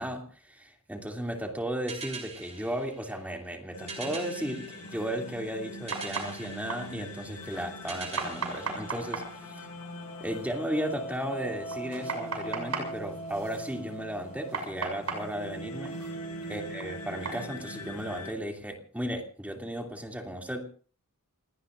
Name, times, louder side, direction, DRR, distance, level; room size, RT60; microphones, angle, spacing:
voice 1, 0.0-9.7 10.2-15.9 16.5-20.6, right 1 dB, 5° right, 2 dB, 2.8 m, -35 dB
sound 1, 1.9-9.7, right 4 dB, 30° right, 6.6 m, -44 dB
sound 2, 3.7-18.3, equal, 85° left, 5.6 m, -41 dB
sound 3, 4.7-17.5, right 4 dB, 75° right, 6.2 m, -40 dB
29.5 x 18.5 x 2.6 m, 0.42 s
head